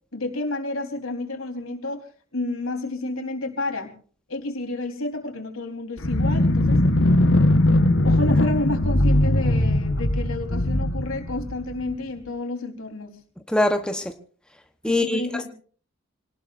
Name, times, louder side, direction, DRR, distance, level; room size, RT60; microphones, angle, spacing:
voice 1, 0.1-2.1 2.3-3.9 4.3-6.8 8.0-13.2 14.9-15.5, left 2 dB, 85° left, 4 dB, 4.1 m, -30 dB
sound 1, 6.0-12.0, left 1 dB, 65° left, 1.5 m, -20 dB
voice 2, 13.5-14.0 14.8-15.5, left 1 dB, 5° left, 5 dB, 1.1 m, -23 dB
27.0 x 19.0 x 2.6 m, 0.43 s
head